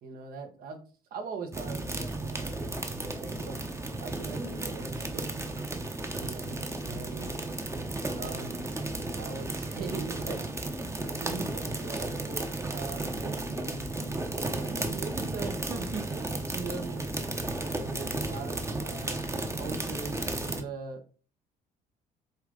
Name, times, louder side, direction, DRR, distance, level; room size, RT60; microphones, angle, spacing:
voice 1, 0.0-0.8 1.1-3.6 4.0-5.4 6.1-7.4 8.1-8.6 9.1-10.4 11.0-13.9 14.3-17.1 17.6-19.2 19.5-21.2, right 4 dB, 60° right, 5 dB, 1.5 m, -40 dB
sound 1, 1.5-20.6, right 2 dB, 15° right, 1.0 m, -34 dB
7.0 x 4.0 x 3.8 m, 0.37 s
cardioid pair, 110°, 17 cm